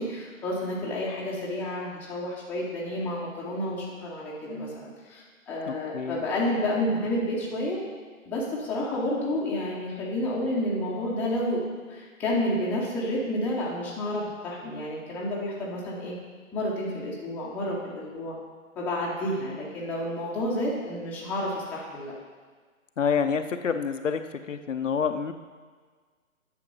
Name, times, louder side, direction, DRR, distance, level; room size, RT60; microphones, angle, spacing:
voice 1, 0.0-7.8 8.3-16.2 16.5-18.4 18.8-22.1, left 1 dB, 5° left, -6 dB, 0.8 m, -30 dB
voice 2, 5.7-6.2 23.0-24.2 24.5-25.3, left 6 dB, 65° left, 8 dB, 0.7 m, -27 dB
9.7 x 6.6 x 5.4 m, 1.5 s
figure-of-eight pair, 135°, 41 cm